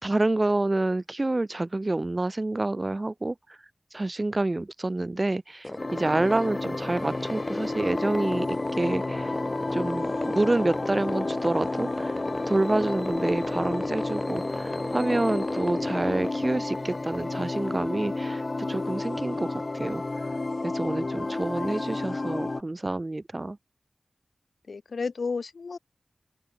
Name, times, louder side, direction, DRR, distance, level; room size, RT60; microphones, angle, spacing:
voice 1, 0.0-3.3 3.9-9.3 9.7-12.1 12.5-18.4 18.7-20.0 20.6-23.6, right 2 dB, 35° right, 2.2 m, -28 dB
sound 1, 5.6-18.3, left 1 dB, 20° left, 2.2 m, -35 dB
sound 2, 5.8-22.6, left 2 dB, 45° left, 1.3 m, -31 dB
voice 2, 21.1-22.0 24.7-25.8, left 4 dB, 80° left, 5.6 m, -34 dB
wide cardioid pair, 55°, 0 cm